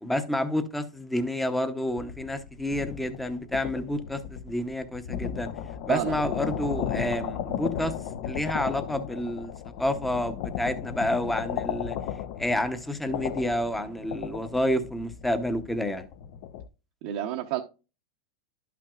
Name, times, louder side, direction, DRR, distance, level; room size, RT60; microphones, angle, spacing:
voice 1, 0.0-5.5 5.8-7.9 8.2-9.5 9.8-12.0 12.4-16.1, left 1 dB, 5° left, 0.8 m, -29 dB
sound 1, 1.8-16.7, left 9 dB, 60° left, 0.6 m, -35 dB
voice 2, 17.0-17.6, right 12 dB, 60° right, 0.7 m, -29 dB
11.0 x 5.8 x 2.4 m
hypercardioid pair, 115°, 2 cm